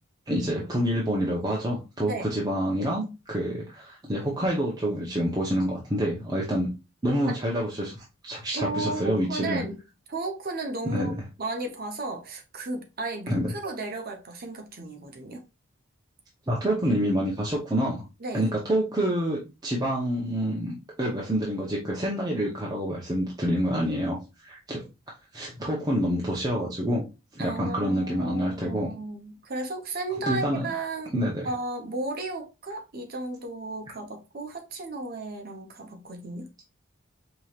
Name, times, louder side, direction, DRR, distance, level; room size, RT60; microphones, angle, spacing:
voice 1, 0.3-6.7 7.0-9.6 10.8-11.1 13.3-13.4 16.5-18.0 18.3-24.8 25.3-27.0 27.3-28.9 30.3-30.7 31.1-31.5, equal, 20° right, 0.8 m, -27 dB
voice 2, 8.5-9.8 10.1-11.1 11.4-15.4 18.2-18.5 27.4-31.1 31.4-36.5, right 2 dB, 45° right, 0.9 m, -34 dB
4.9 x 3.0 x 2.4 m
head